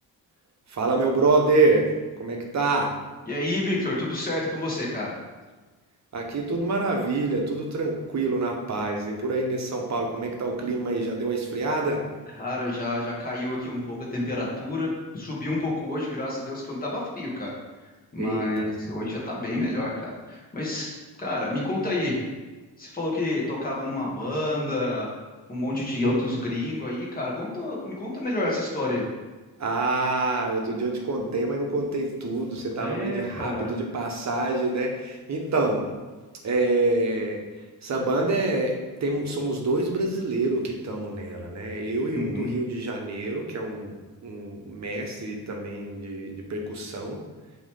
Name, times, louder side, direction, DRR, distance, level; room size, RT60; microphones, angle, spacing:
voice 1, 0.7-1.9 2.2-2.9 6.1-12.0 18.2-18.7 29.6-35.9 36.4-37.4 37.8-43.9 44.2-47.2, right 2 dB, 45° right, 1 dB, 1.1 m, -26 dB
voice 2, 3.3-5.1 12.4-17.5 18.1-22.2 22.8-25.1 25.5-29.0 32.8-33.7 42.1-42.5, left 1 dB, 20° left, -4 dB, 1.7 m, -29 dB
8.1 x 3.2 x 3.8 m, 1.3 s
cardioid pair, 135°, 39 cm